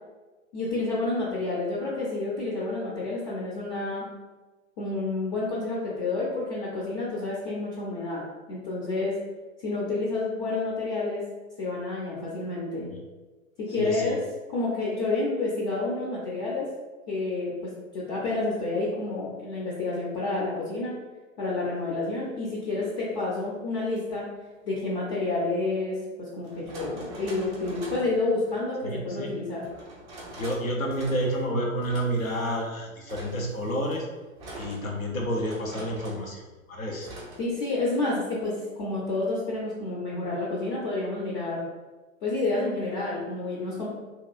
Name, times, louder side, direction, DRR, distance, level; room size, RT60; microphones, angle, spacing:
voice 1, 0.5-4.0 4.8-9.2 9.6-11.2 11.6-12.9 13.6-14.2 14.5-16.7 17.1-21.0 21.4-24.3 24.6-29.6 37.4-41.6 42.2-43.9, left 2 dB, 35° left, -5 dB, 0.6 m, -29 dB
voice 2, 13.8-14.1 28.8-29.3 30.4-34.1 34.5-37.1, equal, 90° left, 0 dB, 0.7 m, -30 dB
sound 1, 23.8-24.0 25.6-25.7 26.4-28.2 29.6-30.6 30.9-31.5 31.8-32.7 33.1-36.3 37.0-37.4, right 1 dB, 15° right, 0.4 m, -43 dB
2.9 x 2.2 x 2.3 m, 1.2 s
figure-of-eight pair, 105°, 40 cm